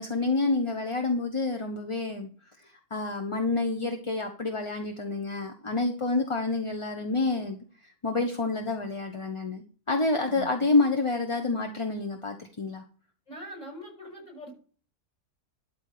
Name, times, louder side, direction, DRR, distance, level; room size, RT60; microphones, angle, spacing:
voice 1, 0.0-2.3 2.9-7.6 8.0-9.6 9.9-12.8, left 3 dB, 25° left, 4 dB, 0.9 m, -28 dB
voice 2, 13.3-14.5, equal, 50° left, -1 dB, 7.4 m, -42 dB
12.5 x 4.4 x 6.8 m, 0.40 s
omnidirectional pair, 1.6 m